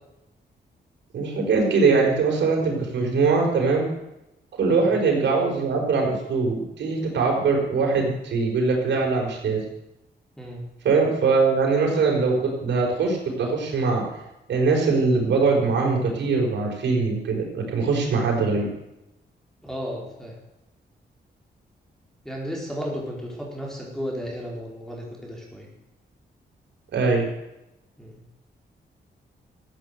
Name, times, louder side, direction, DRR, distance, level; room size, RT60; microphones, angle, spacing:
voice 1, 1.1-3.9 4.6-9.6 10.8-14.0 14.5-18.7 26.9-27.3, right 4 dB, 90° right, 0 dB, 4.9 m, -22 dB
voice 2, 19.6-20.3 22.2-25.7 28.0-28.2, equal, ahead, -2 dB, 4.6 m, -34 dB
15.0 x 9.0 x 8.1 m, 0.91 s
cardioid pair, 105°, 18 cm